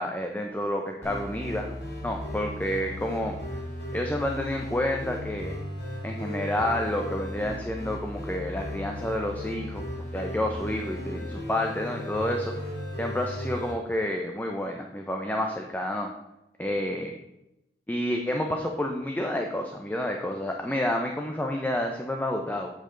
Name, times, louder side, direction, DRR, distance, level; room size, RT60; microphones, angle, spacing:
voice 1, 0.0-1.7 2.0-3.6 3.9-5.6 6.0-9.8 10.1-16.1 16.6-17.1 17.9-22.7, left 1 dB, 10° left, 2 dB, 0.5 m, -29 dB
sound 1, 1.0-13.7, left 1 dB, 70° left, 2.9 m, -36 dB
8.2 x 6.6 x 3.8 m, 0.89 s
head